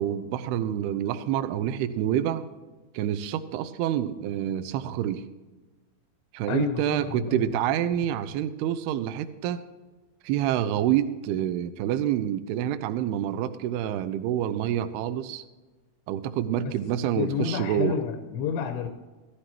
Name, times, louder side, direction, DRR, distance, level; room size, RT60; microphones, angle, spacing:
voice 1, 0.0-2.5 2.9-5.2 6.3-9.6 10.2-15.4 16.1-18.0, right 11 dB, 80° right, 11 dB, 2.4 m, -27 dB
voice 2, 6.5-7.5 16.6-16.8 17.2-18.9, left 7 dB, 85° left, 6 dB, 3.2 m, -30 dB
15.5 x 13.0 x 3.0 m, 1.2 s
omnidirectional pair, 5.1 m